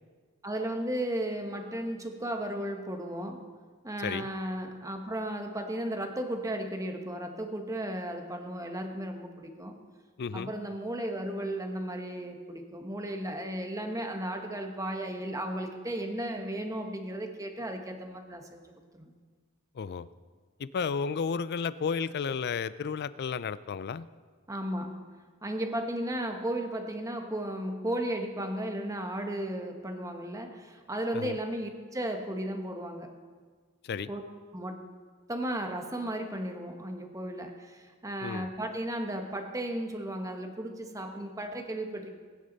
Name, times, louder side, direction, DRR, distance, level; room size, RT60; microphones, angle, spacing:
voice 1, 0.4-3.5 3.8-9.7 10.3-19.1 24.5-33.1 34.1-34.2 34.5-34.9 35.3-42.1, right 1 dB, 15° right, 4 dB, 1.2 m, -35 dB
voice 2, 10.2-10.5 19.8-20.1 20.6-24.1 31.1-31.4 33.8-34.1 38.2-38.5, left 6 dB, 50° left, 17 dB, 0.4 m, -32 dB
21.0 x 10.0 x 4.0 m, 1.5 s
head